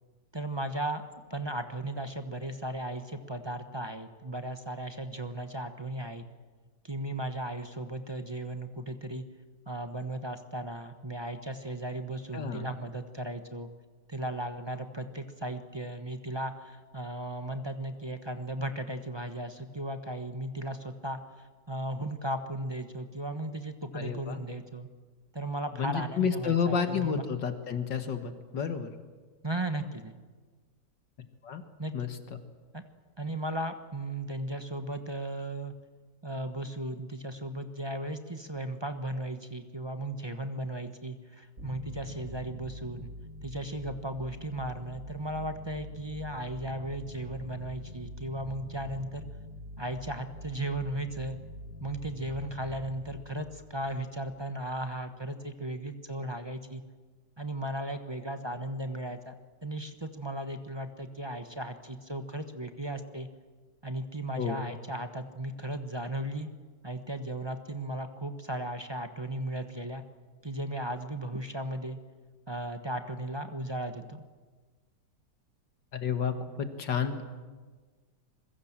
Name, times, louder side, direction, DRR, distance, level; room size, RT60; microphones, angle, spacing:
voice 1, 0.3-6.2 6.8-9.3 9.7-13.7 14.1-21.2 21.7-24.9 25.3-27.2 29.4-30.2 31.8-32.1 32.7-32.8 33.2-35.7 36.2-43.1 43.4-49.3 49.8-51.4 51.8-56.8 57.4-59.3 59.6-63.3 63.8-66.5 66.8-70.0 70.4-72.0 72.5-74.2, right 1 dB, 15° right, 8 dB, 1.1 m, -36 dB
voice 2, 12.3-12.7 23.9-24.4 25.8-28.9 31.4-31.6 31.9-32.4 64.4-64.6 75.9-77.2, left 6 dB, 80° left, 8 dB, 2.4 m, -31 dB
sound 1, 41.6-54.7, left 1 dB, 45° right, 4.0 m, -45 dB
26.0 x 22.5 x 7.5 m, 1.4 s
omnidirectional pair, 1.9 m